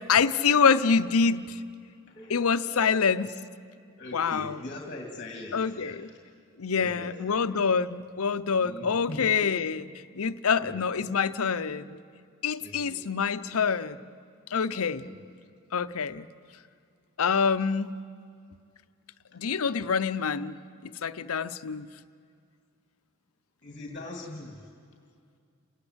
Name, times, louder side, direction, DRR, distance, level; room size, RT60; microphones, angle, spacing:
voice 1, 0.1-1.6 2.3-3.3 4.1-4.6 5.5-6.1 6.6-9.8 10.1-12.0 12.4-14.0 14.5-15.1 15.7-16.3 17.2-17.9 19.3-20.6 20.8-21.9, left 5 dB, 80° left, 12 dB, 0.7 m, -26 dB
voice 2, 2.1-2.5 2.7-3.1 4.0-6.0 6.7-7.4 8.6-9.2 10.6-11.1 12.6-13.0 14.9-15.2 19.3-19.4 23.6-24.7, left 2 dB, 35° left, 2 dB, 2.2 m, -42 dB
28.5 x 18.5 x 8.0 m, 2.3 s
head